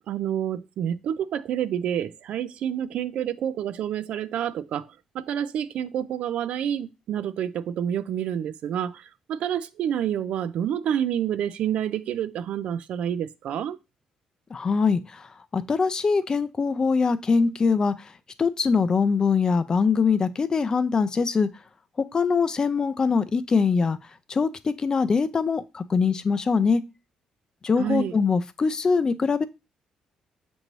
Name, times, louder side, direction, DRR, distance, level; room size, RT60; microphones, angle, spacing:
voice 1, 0.1-4.9 5.1-13.8 27.8-28.1, right 9 dB, 75° right, 0.3 m, -28 dB
voice 2, 14.5-15.3 15.5-18.1 18.4-21.5 22.1-24.0 24.3-26.8 27.6-29.4, left 5 dB, 35° left, 0.4 m, -23 dB
6.5 x 2.6 x 3.0 m
cardioid pair, 90°, 2 cm